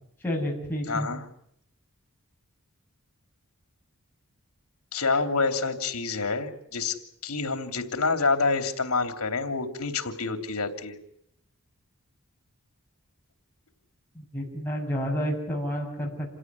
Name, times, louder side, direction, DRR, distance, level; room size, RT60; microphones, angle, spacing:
voice 1, 0.2-1.1 14.1-16.4, equal, 10° left, -3 dB, 7.2 m, -30 dB
voice 2, 0.9-1.2 4.9-7.0 7.2-11.0, left 4 dB, 80° left, 8 dB, 3.0 m, -27 dB
28.0 x 17.5 x 9.7 m, 0.73 s
head